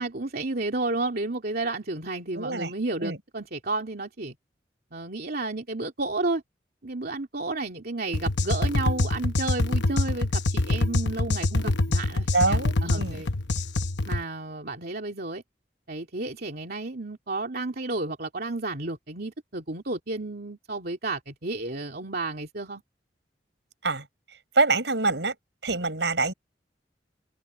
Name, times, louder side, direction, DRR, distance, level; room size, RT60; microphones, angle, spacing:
voice 1, 0.0-4.4 4.9-6.4 6.8-13.3 14.1-15.4 15.9-22.8, right 2 dB, 60° right, 2.9 m, -32 dB
voice 2, 2.3-2.7 3.0-3.2 12.3-13.2 23.8-24.1 24.5-25.3 25.6-26.3, right 3 dB, 80° right, 6.3 m, -25 dB
Outro Bass Pulse, 8.1-14.2, left 2 dB, 80° left, 1.0 m, -25 dB
head